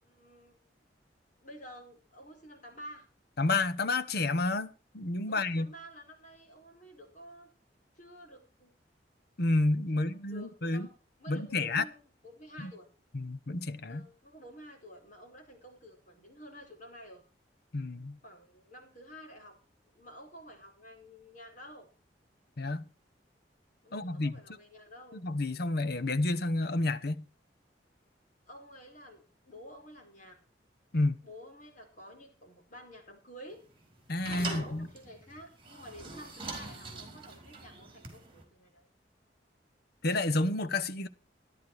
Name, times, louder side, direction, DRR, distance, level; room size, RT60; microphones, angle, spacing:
voice 1, 0.0-0.8 1.4-3.1 5.3-7.5 7.9-8.7 9.9-12.9 13.9-17.2 18.2-19.5 19.9-21.9 23.8-25.2 28.5-30.4 31.2-33.6 34.5-38.9, equal, 45° left, 4.8 m, -51 dB
voice 2, 3.4-4.7 4.9-5.7 9.4-10.9 11.3-11.8 12.6-12.7 13.1-14.0 17.7-18.2 22.6-22.9 23.9-24.3 25.1-27.2 30.9-31.2 34.1-34.9 40.0-41.1, left 2 dB, 60° left, 1.0 m, -30 dB
sound 1, 33.5-38.4, right 3 dB, 30° right, 4.4 m, -43 dB
13.5 x 11.5 x 4.7 m
head